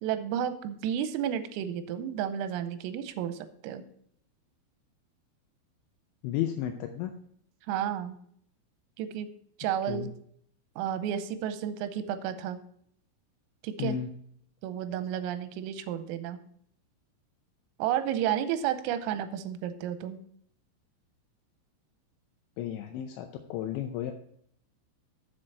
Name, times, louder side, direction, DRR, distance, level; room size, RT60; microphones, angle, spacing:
voice 1, 0.0-3.8 7.7-8.2 9.0-9.3 9.6-10.1 10.8-12.6 13.6-14.0 14.6-16.4 17.8-20.2, right 10 dB, 85° right, 10 dB, 3.3 m, -32 dB
voice 2, 6.2-7.1 9.9-10.1 13.8-14.1 22.6-24.1, left 11 dB, 85° left, 5 dB, 2.6 m, -33 dB
7.5 x 6.6 x 5.4 m, 0.65 s
omnidirectional pair, 6.0 m